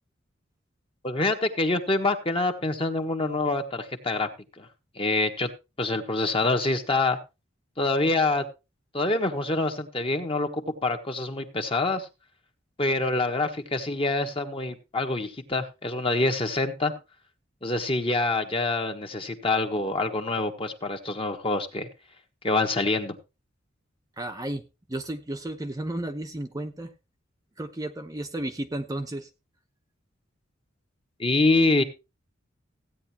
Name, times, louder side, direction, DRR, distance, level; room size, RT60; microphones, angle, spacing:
voice 1, 1.0-4.3 4.6-4.7 4.9-5.5 5.8-7.2 7.8-8.4 8.9-12.1 12.8-16.9 17.6-21.9 22.4-23.2 31.2-31.8, left 2 dB, 30° left, 5 dB, 1.3 m, -26 dB
voice 2, 24.2-24.6 24.9-26.9 27.6-29.3, right 1 dB, 20° right, 5 dB, 0.7 m, -33 dB
15.5 x 9.3 x 2.9 m, 0.27 s
head